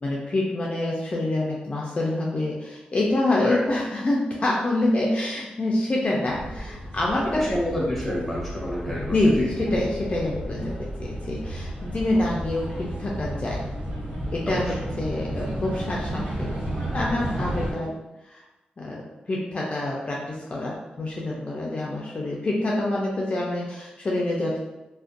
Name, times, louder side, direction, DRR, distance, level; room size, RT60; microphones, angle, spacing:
voice 1, 0.0-7.6 9.0-13.7 14.3-16.5 16.9-18.0 18.3-18.4 18.8-24.6, left 1 dB, 40° left, -3 dB, 0.4 m, -26 dB
sound 1, 6.3-17.7, right 1 dB, 65° right, 1.0 m, -32 dB
voice 2, 7.2-9.5 14.5-14.7, left 1 dB, ahead, -5 dB, 0.9 m, -29 dB
2.5 x 2.1 x 2.4 m, 1.0 s
cardioid pair, 70°, 3 cm